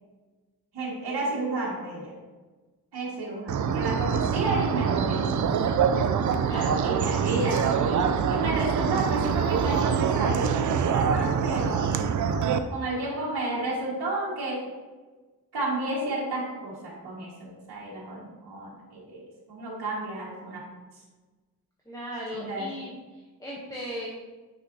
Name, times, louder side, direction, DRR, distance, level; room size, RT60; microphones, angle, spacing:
voice 1, 0.7-2.1 2.9-5.2 6.8-12.0 12.7-14.6 15.5-20.6 22.3-22.7, right 2 dB, 80° right, -6 dB, 1.9 m, -31 dB
sound 1, 3.5-12.6, right 7 dB, 50° right, 0.4 m, -25 dB
voice 2, 6.5-6.9 21.9-24.1, equal, 10° left, -5 dB, 0.9 m, -37 dB
6.0 x 5.8 x 2.7 m, 1.3 s
wide cardioid pair, 125°, 38 cm